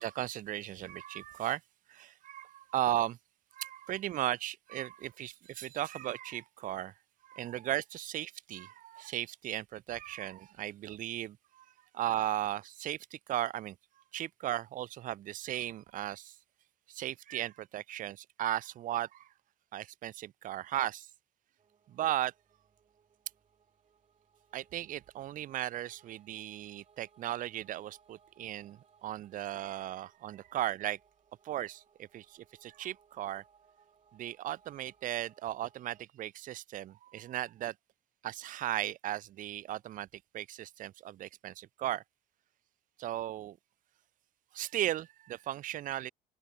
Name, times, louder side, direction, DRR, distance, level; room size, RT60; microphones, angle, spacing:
voice 1, 0.0-1.6 1.9-3.2 3.5-6.9 7.2-11.6 11.9-13.8 14.1-16.3 16.9-19.3 19.7-21.1 21.9-22.3 24.5-31.0 31.4-33.4 34.1-37.7 38.2-40.1 40.3-42.0 43.0-43.6 44.5-46.1, right 13 dB, 50° right, 0.5 m, -36 dB
sound 1, 21.6-36.0, right 6 dB, 35° right, 4.7 m, -67 dB
open air
cardioid pair, 110°, 17 cm